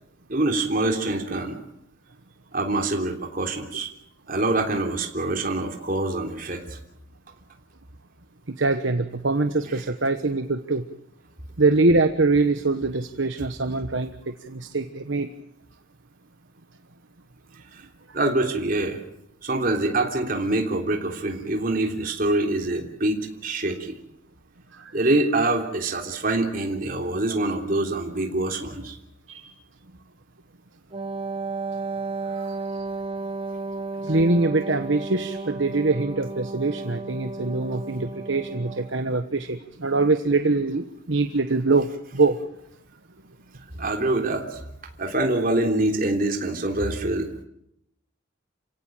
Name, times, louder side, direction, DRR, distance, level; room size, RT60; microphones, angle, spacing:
voice 1, 0.3-1.6 2.5-3.9 4.3-6.8 17.7-17.8 18.1-19.0 19.4-23.9 24.9-29.0 43.8-44.6 45.0-47.3, right 2 dB, 45° right, 3 dB, 3.4 m, -25 dB
voice 2, 8.6-10.8 11.6-14.1 14.5-15.3 29.3-29.4 32.4-32.5 34.1-41.9 42.1-42.4, right 3 dB, 70° right, 8 dB, 1.2 m, -23 dB
Wind instrument woodwind instrument, 30.9-39.0, right 3 dB, 30° right, 1.0 m, -33 dB
28.5 x 17.5 x 9.2 m, 0.79 s
head